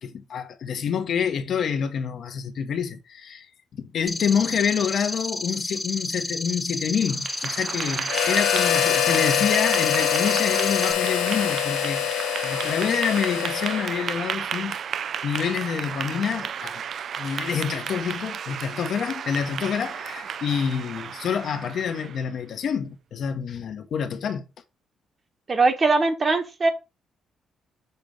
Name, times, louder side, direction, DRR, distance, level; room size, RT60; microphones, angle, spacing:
voice 1, 0.0-14.8 15.2-16.8 17.2-24.4, left 7 dB, 65° left, 0.9 m, -27 dB
sound 1, 4.1-10.9, left 2 dB, 15° left, 0.6 m, -31 dB
Clapping / Applause, 7.0-22.3, right 8 dB, 60° right, 0.4 m, -33 dB
Harmonica, 8.1-14.1, left 13 dB, 85° left, 0.4 m, -25 dB
voice 2, 25.5-26.7, right 3 dB, 35° right, 1.3 m, -21 dB
6.7 x 3.0 x 5.1 m
cardioid pair, 90°, 0 cm